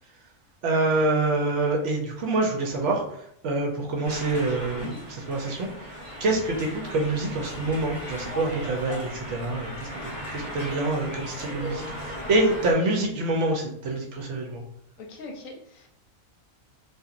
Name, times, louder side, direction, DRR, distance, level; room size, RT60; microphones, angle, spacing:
voice 1, 0.6-3.0 3.4-5.7 6.2-9.9 10.3-14.6, right 2 dB, 65° right, 1 dB, 0.8 m, -26 dB
sound 1, 4.0-12.7, equal, 35° left, 0.8 m, -37 dB
voice 2, 15.0-15.9, left 2 dB, 75° left, 1 dB, 1.0 m, -41 dB
2.8 x 2.5 x 2.4 m, 0.72 s
omnidirectional pair, 1.4 m